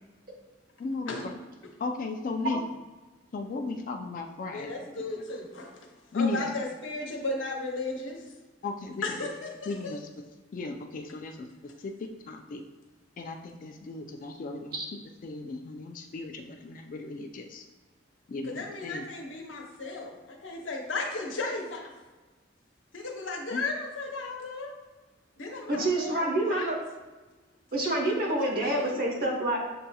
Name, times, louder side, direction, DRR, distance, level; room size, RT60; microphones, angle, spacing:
voice 1, 0.8-1.2 1.8-2.6 3.3-5.0 6.1-6.5 8.6-9.0 9.7-10.0 10.5-11.4 11.6-12.6 13.2-14.8 15.2-17.6 18.3-19.0 23.5-23.6 25.8-25.9, left 3 dB, 45° left, 5 dB, 0.3 m, -35 dB
voice 2, 4.5-8.3 9.0-10.0 18.4-21.9 22.9-24.7 25.4-26.7 28.3-29.0, left 3 dB, 80° left, 0 dB, 0.9 m, -35 dB
voice 3, 25.7-26.8 27.7-29.6, right 1 dB, 50° right, -1 dB, 1.0 m, -27 dB
7.5 x 2.8 x 2.2 m, 1.2 s
head